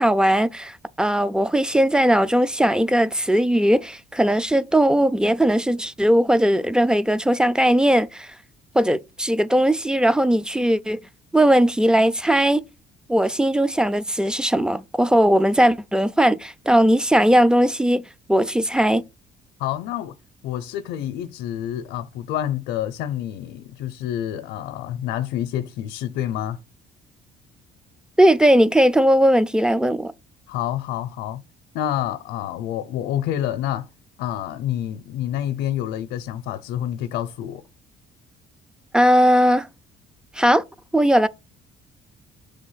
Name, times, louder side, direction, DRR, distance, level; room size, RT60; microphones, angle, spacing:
voice 1, 0.0-8.3 8.7-11.0 11.3-12.6 13.1-18.0 18.3-19.0 28.2-30.1 38.9-39.7 40.4-40.6 40.9-41.3, equal, 5° right, 0.4 m, -18 dB
voice 2, 19.6-20.1 20.4-26.6 30.5-31.4 31.7-33.9 34.2-37.6, left 11 dB, 90° left, 0.6 m, -28 dB
6.5 x 3.4 x 5.6 m
cardioid pair, 110°, 17 cm